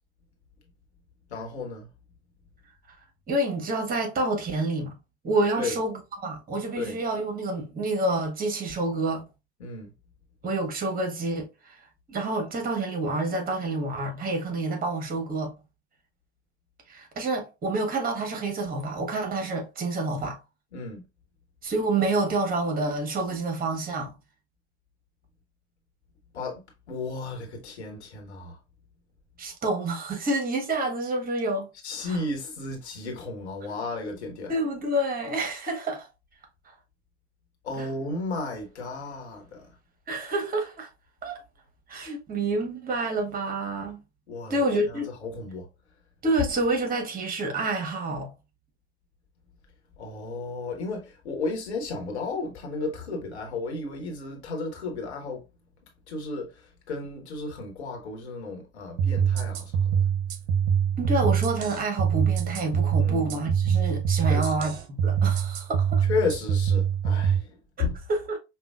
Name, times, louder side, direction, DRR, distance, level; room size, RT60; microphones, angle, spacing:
voice 1, 1.3-1.9 5.6-5.7 6.8-7.0 9.6-9.9 20.7-21.0 26.3-26.6 26.9-28.6 31.8-34.5 37.6-39.6 44.3-45.7 50.0-55.4 56.1-59.7 63.0-63.2 64.3-64.5 66.1-68.0, left 3 dB, 75° left, 1.4 m, -33 dB
voice 2, 3.3-5.0 5.2-9.2 10.4-11.7 12.1-15.5 16.9-20.4 21.6-24.1 29.4-31.7 32.0-32.2 34.5-36.1 36.6-36.7 37.8-37.9 40.1-40.9 41.2-41.4 41.9-44.0 44.5-45.1 46.2-48.3 61.0-66.0 68.1-68.4, right 2 dB, 25° right, 1.4 m, -28 dB
sound 1, 59.0-67.4, right 8 dB, 45° right, 0.9 m, -24 dB
5.5 x 2.5 x 2.4 m
figure-of-eight pair, 80°, 34 cm